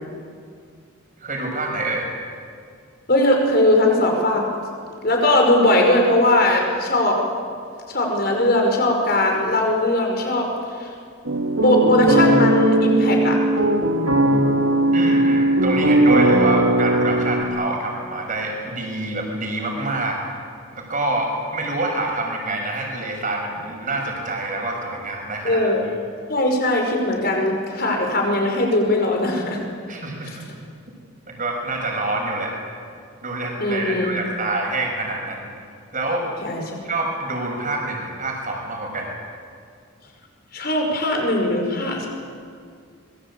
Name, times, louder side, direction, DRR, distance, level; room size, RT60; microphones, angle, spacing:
voice 1, 1.2-2.1 14.9-20.2 20.7-25.6 29.9-30.5 31.3-32.6 33.2-35.5 35.9-36.3 36.8-39.1, right 2 dB, 40° right, 1 dB, 6.1 m, -26 dB
voice 2, 3.1-4.4 5.0-7.2 7.9-10.5 10.8-10.9 11.6-13.4 25.4-25.8 26.3-29.6 30.2-30.4 33.6-34.1 36.4-36.8 40.5-42.1, left 1 dB, 45° left, 2 dB, 5.6 m, -19 dB
sound 1, 11.3-17.4, right 1 dB, 75° right, 2.6 m, -18 dB
25.5 x 22.5 x 8.6 m, 2.2 s
head